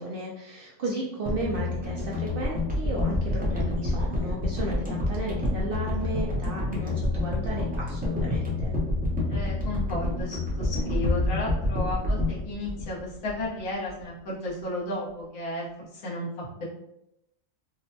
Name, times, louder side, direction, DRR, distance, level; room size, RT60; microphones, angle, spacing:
voice 1, 0.0-8.7, right 2 dB, 65° right, -3 dB, 0.5 m, -34 dB
sound 1, 1.3-13.6 13.9-14.0, left 2 dB, 10° right, 0.4 m, -28 dB
voice 2, 9.3-16.6, left 1 dB, 80° left, -6 dB, 1.5 m, -33 dB
3.6 x 2.1 x 2.7 m, 0.84 s
omnidirectional pair, 1.4 m